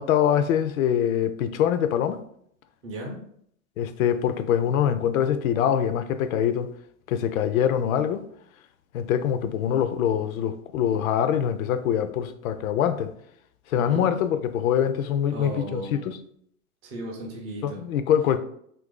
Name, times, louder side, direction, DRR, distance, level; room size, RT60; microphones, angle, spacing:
voice 1, 0.0-2.2 3.8-6.7 7.1-8.2 8.9-13.1 13.7-16.2 17.6-18.4, left 9 dB, 75° left, 0.5 m, -24 dB
voice 2, 2.8-3.2 13.7-14.1 15.3-16.1 16.8-17.8, right 1 dB, 15° right, 0.4 m, -35 dB
2.7 x 2.6 x 3.7 m
supercardioid pair, 150°, 41 cm